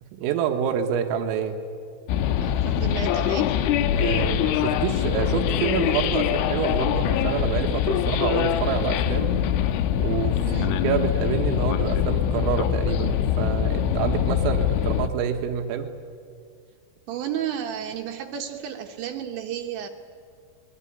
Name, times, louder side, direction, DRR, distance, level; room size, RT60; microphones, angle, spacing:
voice 1, 0.2-1.6 4.0-9.3 9.9-15.9, right 8 dB, 90° right, 4 dB, 4.1 m, -27 dB
sound 1, 2.1-15.1, left 10 dB, 80° left, 3.3 m, -23 dB
voice 2, 2.4-3.6 10.5-10.8 17.1-19.9, right 9 dB, 70° right, 4 dB, 3.2 m, -32 dB
23.5 x 21.0 x 9.9 m, 2.2 s
omnidirectional pair, 5.8 m